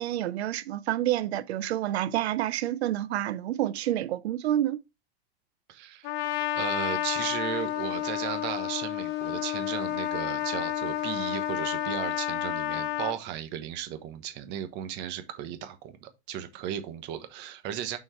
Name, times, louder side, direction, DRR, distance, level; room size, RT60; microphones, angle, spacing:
voice 1, 0.0-4.8, right 13 dB, 85° right, 0.6 m, -28 dB
voice 2, 5.7-6.1 6.5-18.0, right 10 dB, 35° right, 1.1 m, -35 dB
Trumpet, 6.0-13.2, left 12 dB, 35° left, 0.9 m, -30 dB
6.4 x 4.5 x 4.4 m
supercardioid pair, 150°, 31 cm